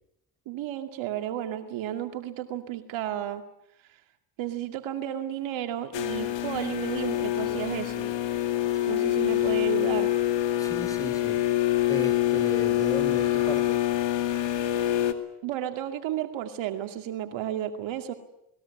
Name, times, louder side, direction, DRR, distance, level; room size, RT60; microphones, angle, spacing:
voice 1, 0.5-3.4 4.4-8.1 8.9-10.1 15.4-18.1, right 11 dB, 75° right, 7 dB, 2.4 m, -32 dB
sound 1, 5.9-15.1, left 14 dB, 70° left, 2.5 m, -26 dB
voice 2, 10.6-11.4 11.9-13.8, equal, 5° left, 12 dB, 4.4 m, -36 dB
20.5 x 20.0 x 9.7 m, 0.80 s
supercardioid pair, 70°, 46 cm